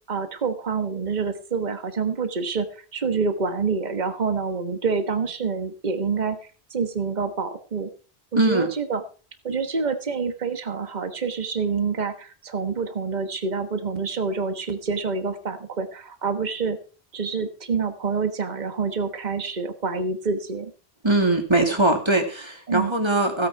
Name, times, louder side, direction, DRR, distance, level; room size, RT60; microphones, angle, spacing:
voice 1, 0.1-6.4 6.7-7.9 8.3-9.0 9.4-16.8 17.1-20.7 22.7-22.9, right 5 dB, 45° right, 8 dB, 1.4 m, -27 dB
voice 2, 8.4-8.7 21.0-23.5, right 2 dB, 25° right, 4 dB, 2.3 m, -21 dB
16.0 x 9.4 x 4.6 m, 0.38 s
omnidirectional pair, 1.1 m